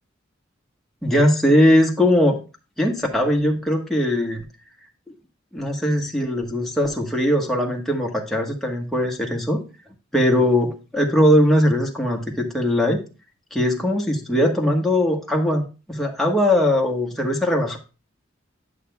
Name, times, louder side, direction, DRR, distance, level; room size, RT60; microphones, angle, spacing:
voice 1, 1.0-2.4 2.8-4.4 5.5-9.6 10.1-13.0 13.5-15.6 15.9-17.8, left 1 dB, ahead, -1 dB, 1.2 m, -20 dB
11.0 x 6.5 x 2.3 m, 0.32 s
head